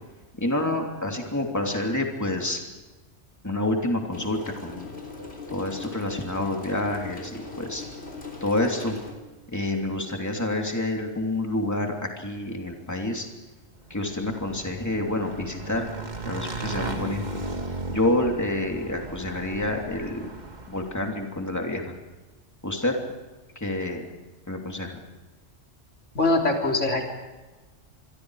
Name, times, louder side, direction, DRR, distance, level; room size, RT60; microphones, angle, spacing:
voice 1, 0.4-2.6 3.4-4.9 5.5-7.8 8.4-8.9 9.5-13.3 13.9-15.9 16.3-17.2 17.9-20.3 20.7-21.8 22.6-22.9 23.6-24.0 24.5-24.9, left 1 dB, 15° left, 1 dB, 3.0 m, -28 dB
sound 1, 4.1-9.1, left 4 dB, 60° left, 3.6 m, -40 dB
Motorcycle / Engine, 13.9-21.2, right 2 dB, 40° right, 2.0 m, -36 dB
voice 2, 26.2-27.0, left 2 dB, 85° left, 1 dB, 3.9 m, -22 dB
26.5 x 23.5 x 4.9 m, 1.2 s
omnidirectional pair, 1.2 m